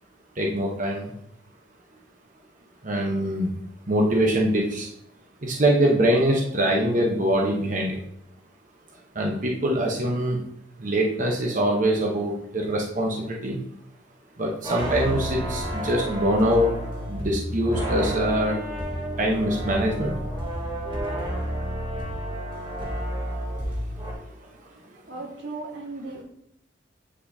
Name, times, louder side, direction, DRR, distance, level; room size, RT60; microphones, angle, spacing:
voice 1, 0.4-1.1 2.8-3.5 3.9-4.9 5.4-8.0 9.1-10.4 10.8-13.6 14.4-16.7 17.1-18.5 19.2-20.1, right 1 dB, 45° right, -1 dB, 1.0 m, -23 dB
sound 1, 14.6-24.1, equal, 25° right, 1.4 m, -30 dB
voice 2, 25.1-26.2, right 3 dB, 85° right, 0 dB, 1.6 m, -36 dB
8.6 x 5.3 x 2.7 m, 0.70 s
head